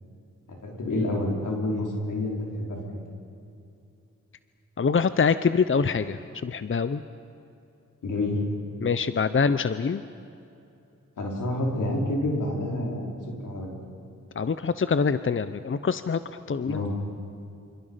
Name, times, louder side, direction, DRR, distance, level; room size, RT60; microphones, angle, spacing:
voice 1, 0.6-3.0 8.0-8.4 11.2-13.2 13.4-13.8 16.6-16.9, left 1 dB, 85° left, -1 dB, 5.1 m, -28 dB
voice 2, 4.8-7.0 8.8-10.0 14.4-16.8, left 5 dB, 40° left, 13 dB, 0.8 m, -25 dB
27.5 x 27.0 x 5.8 m, 2.7 s
cardioid pair, 60°, 30 cm